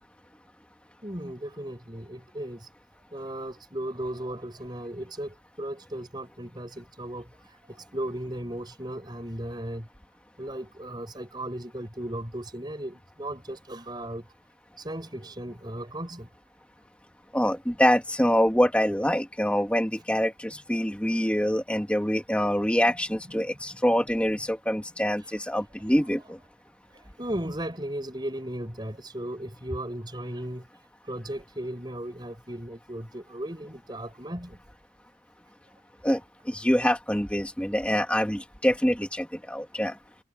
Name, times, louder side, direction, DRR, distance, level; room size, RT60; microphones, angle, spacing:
voice 1, 1.0-2.7 3.1-7.3 7.7-9.9 10.4-14.3 14.8-16.3 23.3-23.4 27.2-30.7 31.1-34.6, right 1 dB, 25° right, 6.9 m, -36 dB
voice 2, 17.3-26.4 36.0-36.2 36.5-40.0, equal, 5° left, 1.8 m, -25 dB
head